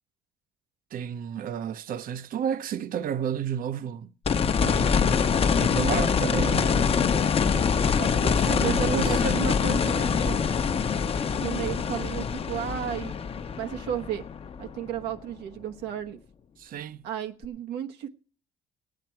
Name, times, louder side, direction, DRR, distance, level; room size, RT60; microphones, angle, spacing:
voice 1, 0.9-4.1 4.6-7.0 8.2-9.6 16.6-17.1, right 9 dB, 55° right, 0.8 m, -32 dB
sound 1, 4.2-15.2 17.4-17.5, left 6 dB, 35° left, 0.9 m, -24 dB
voice 2, 8.0-10.4 11.4-13.2 13.6-14.2 14.6-16.2 17.0-18.1, right 9 dB, 85° right, 1.1 m, -33 dB
18.0 x 9.1 x 4.5 m
cardioid pair, 110°, 17 cm